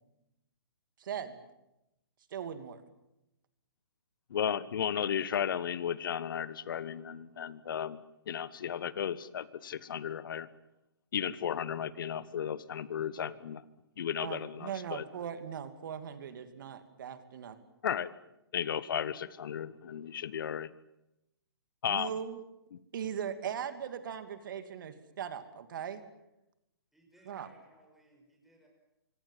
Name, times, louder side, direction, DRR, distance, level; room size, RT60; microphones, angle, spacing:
voice 1, 1.0-1.4 2.3-2.8 14.2-17.6 21.9-22.4 22.9-26.0 27.2-27.5, right 8 dB, 55° right, 9 dB, 2.7 m, -39 dB
voice 2, 4.3-10.5 11.1-13.6 14.0-15.0 17.8-18.1 18.5-20.7 21.8-22.1, left 8 dB, 55° left, 18 dB, 1.2 m, -34 dB
voice 3, 26.9-28.7, right 1 dB, ahead, 0 dB, 5.7 m, -62 dB
25.5 x 24.0 x 7.5 m, 0.89 s
hypercardioid pair, 135°, 13 cm